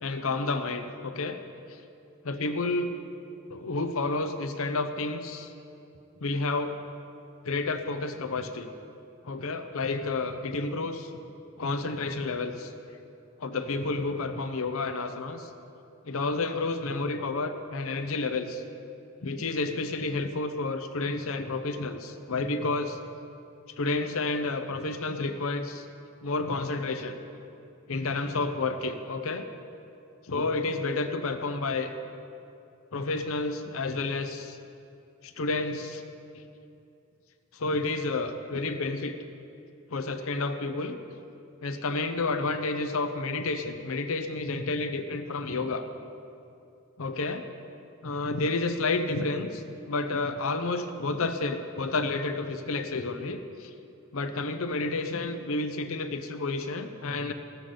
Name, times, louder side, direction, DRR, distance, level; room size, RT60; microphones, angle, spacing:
voice 1, 0.0-1.4 1.7-1.8 2.2-3.0 3.5-5.5 6.2-6.8 7.4-8.7 9.2-11.1 11.6-12.7 13.4-15.5 16.0-18.6 19.2-23.0 23.8-25.9 26.2-27.2 27.9-29.4 30.3-31.9 32.9-34.6 35.2-36.0 37.5-39.2 39.9-41.0 41.6-45.9 47.0-47.5 48.0-53.7 54.1-57.3, left 3 dB, 70° left, 8 dB, 0.7 m, -30 dB
14.5 x 13.0 x 3.9 m, 2.6 s
head